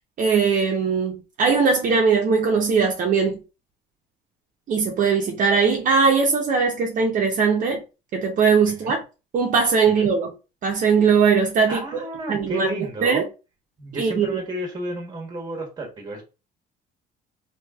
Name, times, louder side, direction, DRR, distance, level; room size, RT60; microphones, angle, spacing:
voice 1, 0.2-3.4 4.7-7.8 8.1-9.0 9.3-10.3 10.6-12.0 12.3-12.7 13.0-13.2 13.9-14.4, right 5 dB, 50° right, 0.7 m, -20 dB
voice 2, 11.7-13.3 13.8-16.2, right 1 dB, 25° right, 1.1 m, -32 dB
3.1 x 2.7 x 2.3 m
cardioid pair, 110°, 17 cm